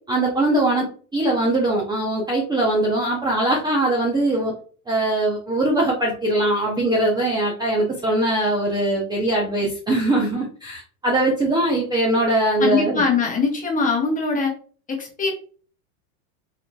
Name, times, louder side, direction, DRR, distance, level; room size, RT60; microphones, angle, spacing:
voice 1, 0.1-0.8 1.1-4.5 4.9-13.0, right 1 dB, 10° right, -3 dB, 0.6 m, -21 dB
voice 2, 12.6-14.5 14.9-15.3, left 4 dB, 20° left, 1 dB, 1.1 m, -22 dB
4.0 x 2.8 x 2.2 m, 0.41 s
hypercardioid pair, 115°, 44 cm